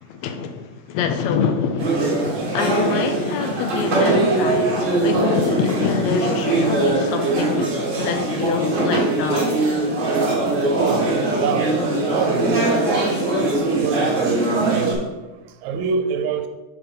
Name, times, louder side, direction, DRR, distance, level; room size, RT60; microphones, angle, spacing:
voice 1, 0.0-9.6, left 6 dB, 80° left, 1.8 m, -26 dB
sound 1, 1.8-14.9, right 2 dB, 45° right, 1.0 m, -21 dB
voice 2, 10.7-11.1 11.4-11.8 12.1-12.9 13.5-15.2 15.6-16.5, right 6 dB, 85° right, 1.9 m, -25 dB
6.0 x 3.5 x 5.1 m
omnidirectional pair, 3.3 m